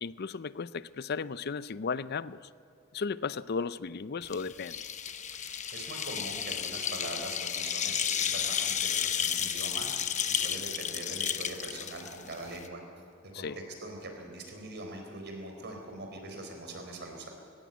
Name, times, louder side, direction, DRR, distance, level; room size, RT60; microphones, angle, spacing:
voice 1, 0.0-2.5 2.9-4.8 13.3-13.6, left 5 dB, 50° left, 17 dB, 0.5 m, -35 dB
sound 1, 4.2-12.7, left 8 dB, 35° left, 1.0 m, -32 dB
voice 2, 5.3-12.8 13.3-17.3, right 2 dB, 55° right, 3 dB, 4.1 m, -42 dB
20.0 x 16.5 x 9.2 m, 2.7 s
head